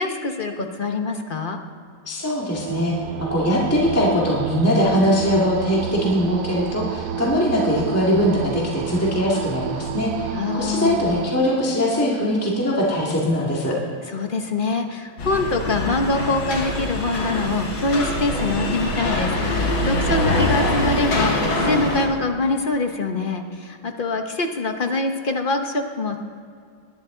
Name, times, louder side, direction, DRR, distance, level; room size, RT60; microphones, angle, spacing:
voice 1, 0.0-1.6 10.3-11.0 14.1-26.2, left 3 dB, 45° left, 5 dB, 0.6 m, -24 dB
voice 2, 2.1-2.9 3.3-13.7, equal, 5° left, -4 dB, 1.9 m, -21 dB
sound 1, 2.5-11.3, right 11 dB, 70° right, 1.0 m, -30 dB
sound 2, 15.2-22.1, left 1 dB, 75° left, 2.8 m, -23 dB
20.0 x 11.0 x 3.8 m, 2.3 s
omnidirectional pair, 2.2 m